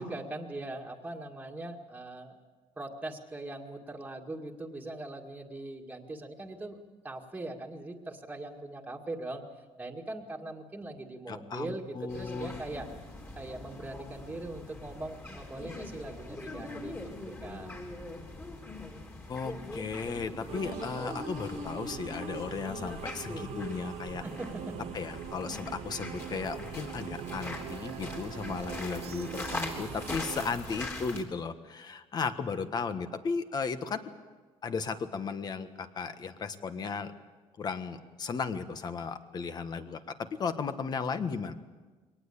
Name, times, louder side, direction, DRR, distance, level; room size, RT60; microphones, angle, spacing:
voice 1, 0.0-2.4 2.8-9.4 9.8-12.9 13.4-17.7 24.2-24.9, right 2 dB, 10° right, 1 dB, 2.1 m, -41 dB
voice 2, 11.3-12.6 19.3-24.2 24.9-34.0 34.6-37.1 37.6-41.5, left 5 dB, 35° left, 9 dB, 1.5 m, -35 dB
sound 1, 12.1-31.2, left 2 dB, 20° left, 3.4 m, -42 dB
sound 2, 20.5-30.5, right 12 dB, 60° right, 0.9 m, -42 dB
22.5 x 18.5 x 8.5 m, 1.3 s
cardioid pair, 130°, 12 cm